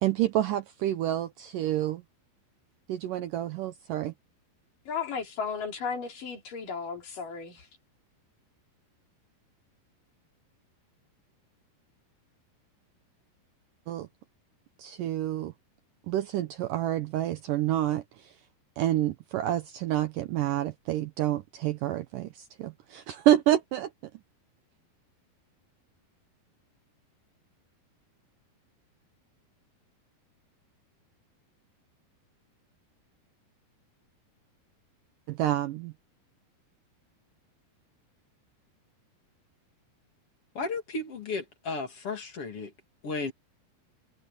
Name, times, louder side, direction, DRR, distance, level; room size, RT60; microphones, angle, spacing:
voice 1, 0.0-2.0 2.9-4.1 13.9-14.1 14.8-15.5 16.1-18.3 18.8-23.9 35.3-35.9, right 13 dB, 75° right, 2.1 m, -28 dB
voice 2, 4.9-7.7, left 5 dB, 55° left, 5.2 m, -34 dB
voice 3, 40.5-42.7 43.0-43.3, left 3 dB, 40° left, 3.0 m, -34 dB
omnidirectional pair, 4.6 m